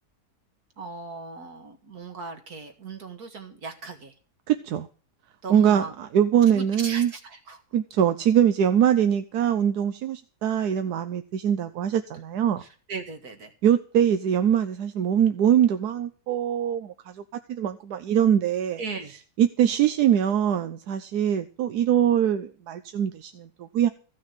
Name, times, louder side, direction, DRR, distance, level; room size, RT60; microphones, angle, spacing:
voice 1, 0.8-4.1 5.4-5.9 6.5-7.6 12.6-13.5 18.8-19.1, right 4 dB, 75° right, 6 dB, 2.3 m, -38 dB
voice 2, 4.5-4.9 5.5-7.1 7.7-12.6 13.6-17.2 17.5-18.8 19.4-23.9, right 9 dB, 90° right, 9 dB, 1.3 m, -23 dB
14.5 x 6.2 x 7.4 m, 0.38 s
omnidirectional pair, 1.6 m